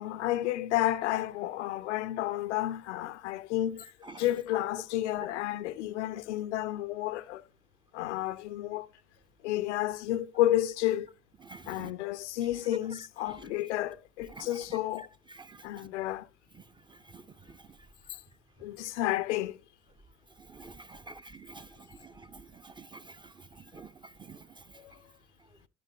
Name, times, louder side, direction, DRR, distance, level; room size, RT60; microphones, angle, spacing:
voice 1, 0.0-3.9 4.2-7.5 7.9-8.9 9.4-11.1 11.7-15.1 15.6-16.3 18.6-19.6 24.8-24.9, left 14 dB, 75° left, 0.5 m, -31 dB
voice 2, 11.4-11.9 13.3-13.5 14.3-14.5 15.3-15.9 16.5-17.8 20.4-24.8, right 3 dB, 15° right, 0.6 m, -49 dB
10.5 x 8.4 x 2.8 m
figure-of-eight pair, 55°, 35 cm